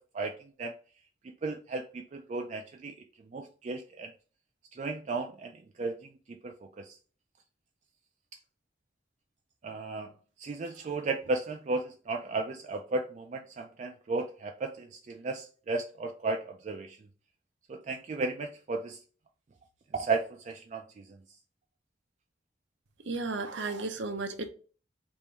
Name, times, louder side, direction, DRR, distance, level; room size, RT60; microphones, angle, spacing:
voice 1, 0.1-0.7 1.4-2.9 3.3-4.1 4.7-5.5 5.8-5.9 6.3-7.0 9.6-10.1 10.4-17.0 17.7-19.0 19.9-21.1, right 3 dB, 40° right, 0.3 m, -34 dB
voice 2, 23.1-24.5, right 3 dB, 85° right, 0.6 m, -34 dB
3.5 x 2.5 x 4.3 m
head